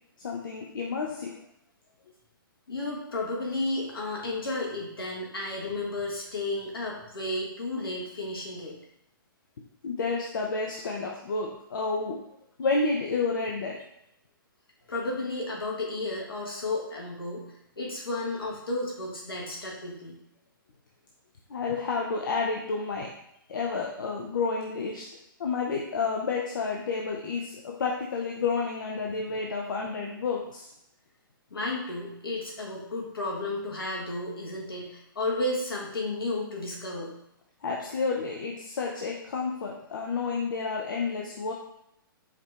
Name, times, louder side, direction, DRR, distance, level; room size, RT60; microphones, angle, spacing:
voice 1, 0.2-1.3 9.8-12.2 12.6-13.8 21.5-23.1 23.5-25.0 25.4-30.7 37.6-41.5, left 4 dB, 65° left, 0 dB, 0.6 m, -30 dB
voice 2, 2.7-8.7 14.9-20.2 31.5-37.1, left 2 dB, 80° left, -3 dB, 1.5 m, -33 dB
4.9 x 2.8 x 3.4 m, 0.81 s
figure-of-eight pair, 120°, 12 cm